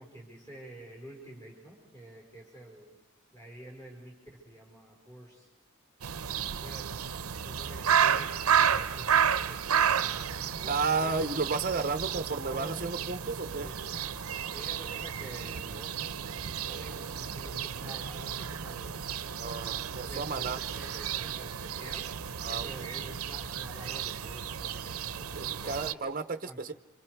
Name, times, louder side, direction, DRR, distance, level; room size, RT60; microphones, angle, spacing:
voice 1, 0.0-2.9 3.3-5.5 6.5-7.0 7.4-11.3 12.1-12.8 13.0-14.0 14.5-19.1 20.0-22.1 22.5-26.0 26.5-26.6, right 1 dB, 15° left, -3 dB, 4.5 m, -48 dB
sound 1, 6.0-25.9, right 8 dB, 80° right, 0.7 m, -32 dB
voice 2, 10.7-13.7 19.4-20.6 22.4-22.9 25.3-26.7, right 4 dB, 40° right, 9 dB, 0.8 m, -32 dB
28.0 x 26.0 x 4.7 m, 0.93 s
head